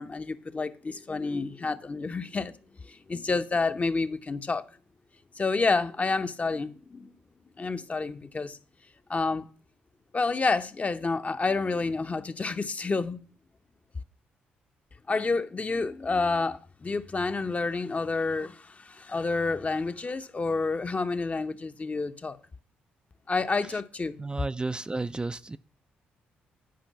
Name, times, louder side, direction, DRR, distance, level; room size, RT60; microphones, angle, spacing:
voice 1, 0.0-2.5 2.8-4.6 5.4-7.1 7.6-8.6 9.1-9.5 10.1-13.2 15.1-22.4 23.3-24.2, left 3 dB, 35° left, 0.8 m, -29 dB
voice 2, 24.2-25.6, right 3 dB, 20° right, 0.4 m, -32 dB
10.5 x 5.2 x 5.7 m
hypercardioid pair, 50°, 4 cm